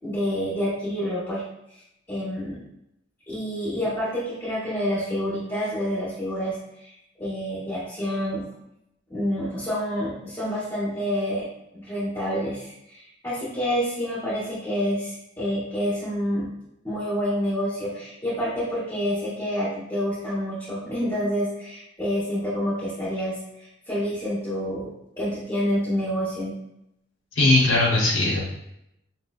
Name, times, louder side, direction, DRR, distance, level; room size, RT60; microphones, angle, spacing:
voice 1, 0.0-1.4 2.1-2.6 3.3-8.4 9.1-11.5 11.7-16.5 16.8-24.9 25.2-26.6, equal, 15° left, -13 dB, 1.1 m, -28 dB
voice 2, 27.4-28.4, left 2 dB, 85° left, -3 dB, 0.8 m, -19 dB
5.3 x 2.1 x 2.4 m, 0.82 s
head